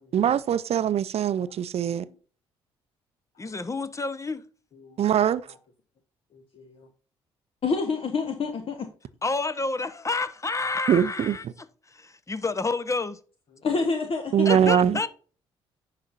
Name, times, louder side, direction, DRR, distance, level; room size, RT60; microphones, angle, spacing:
voice 1, 0.1-2.1 5.0-5.4 10.9-11.4 14.3-15.0, right 9 dB, 50° right, 0.6 m, -22 dB
voice 2, 3.4-4.4 9.2-13.2 14.4-15.1, left 3 dB, 25° left, 0.9 m, -29 dB
voice 3, 6.3-6.9 7.6-8.9 13.6-14.5, left 4 dB, 45° left, 1.2 m, -28 dB
9.9 x 5.9 x 2.6 m
hypercardioid pair, 50°, 13 cm